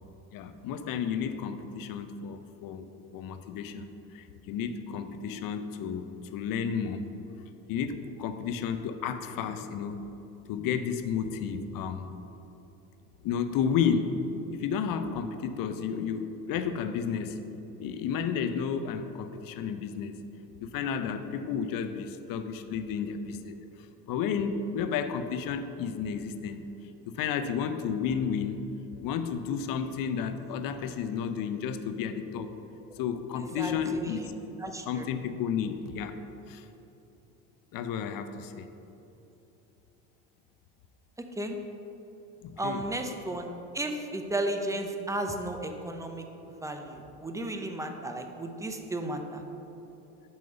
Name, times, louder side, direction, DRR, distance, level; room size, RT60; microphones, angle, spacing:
voice 1, 0.3-7.1 7.7-10.0 10.5-12.1 13.2-14.2 14.5-17.4 17.8-20.2 20.6-23.6 24.1-26.6 27.1-28.6 29.0-32.5 33.0-34.3 34.9-36.2 36.5-36.7 37.7-38.7 42.4-42.9, left 7 dB, 45° left, 9 dB, 0.7 m, -32 dB
voice 2, 33.6-34.3 34.6-35.1 41.4-41.6 42.6-43.5 43.7-46.2 46.6-49.4, right 1 dB, 5° right, 5 dB, 0.7 m, -34 dB
6.0 x 5.5 x 6.8 m, 3.0 s
hypercardioid pair, 70°, 47 cm